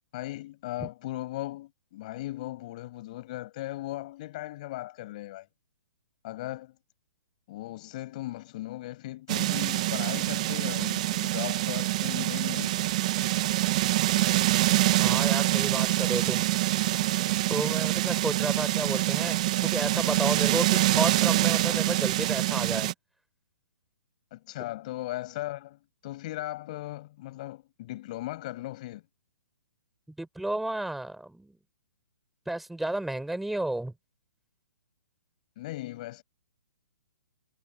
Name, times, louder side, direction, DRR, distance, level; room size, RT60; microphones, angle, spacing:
voice 1, 0.1-5.5 6.2-6.7 7.5-12.9 24.3-29.0 35.6-36.2, left 16 dB, 25° left, 5.7 m, -38 dB
sound 1, 9.3-22.9, right 16 dB, 25° right, 0.8 m, -25 dB
voice 2, 15.0-16.5 17.5-22.9 30.2-31.6 32.5-33.9, right 1 dB, ahead, 3.7 m, -32 dB
hypercardioid pair, 180°, 9 cm